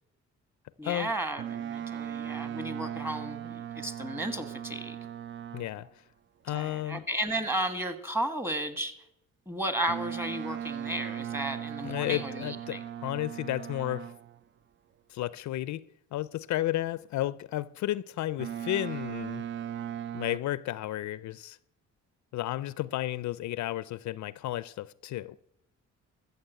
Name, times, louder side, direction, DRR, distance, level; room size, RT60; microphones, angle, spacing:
voice 1, 0.8-5.0 6.5-8.9 9.5-12.8, right 1 dB, 10° right, 1.6 m, -34 dB
Boat Water vehicle, 1.4-5.9 9.9-14.4 18.4-20.4, right 10 dB, 40° right, 0.4 m, -38 dB
voice 2, 5.5-6.0 6.4-7.1 11.8-14.1 15.1-19.4 20.1-21.6 22.3-25.4, left 14 dB, 70° left, 0.5 m, -33 dB
14.5 x 7.0 x 8.0 m
cardioid pair, 90°, 30 cm